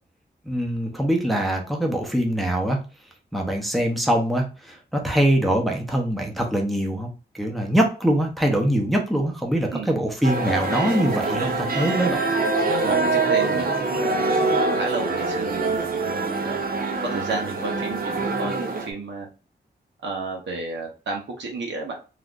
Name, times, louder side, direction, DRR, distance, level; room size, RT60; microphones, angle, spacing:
voice 1, 0.5-2.8 3.3-7.1 7.4-12.2, right 1 dB, ahead, 1 dB, 0.7 m, -23 dB
sound 1, 10.2-18.9, right 3 dB, 55° right, 0.6 m, -24 dB
voice 2, 12.8-16.3 17.0-19.3 20.0-21.9, right 3 dB, 85° right, 1 dB, 0.8 m, -32 dB
3.2 x 2.4 x 2.4 m, 0.33 s
wide cardioid pair, 95°, 18 cm